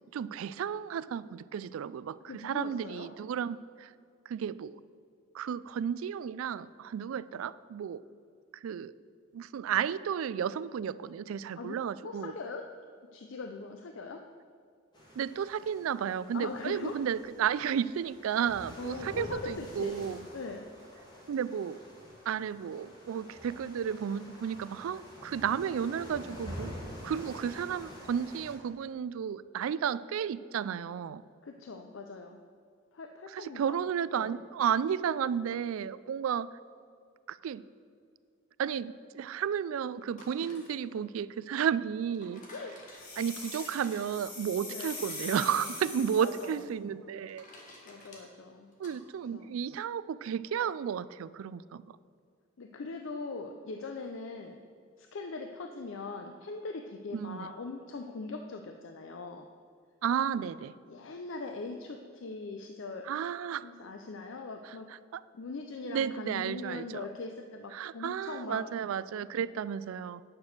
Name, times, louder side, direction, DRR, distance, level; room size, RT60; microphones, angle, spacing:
voice 1, 0.1-3.9 4.3-4.8 5.3-8.0 8.6-8.9 9.3-12.3 15.2-20.2 21.3-21.8 22.3-26.8 27.0-31.2 33.3-36.5 37.3-37.6 38.6-42.4 43.2-47.5 48.8-52.0 57.1-57.5 60.0-60.7 63.0-63.7 65.1-65.2 65.8-67.0 67.7-70.2, right 8 dB, 80° right, 17 dB, 0.3 m, -33 dB
voice 2, 2.3-3.1 11.6-11.8 12.0-12.7 13.0-14.3 16.3-17.0 18.8-20.0 20.3-20.7 31.4-32.4 32.9-33.8 34.2-34.4 40.4-40.6 40.8-41.1 42.5-42.8 44.7-45.0 46.2-46.6 47.8-48.7 49.3-49.5 52.6-54.6 55.0-59.5 60.4-60.5 60.9-63.1 63.6-64.9 65.3-68.7, left 3 dB, 70° left, 5 dB, 0.5 m, -41 dB
sound 1, 14.9-28.5, equal, 20° left, 2.1 m, -47 dB
sound 2, 40.0-49.0, left 1 dB, 40° left, 1.6 m, -54 dB
sound 3, 42.9-46.6, left 3 dB, 85° left, 2.9 m, -42 dB
9.6 x 6.1 x 6.5 m, 2.2 s
head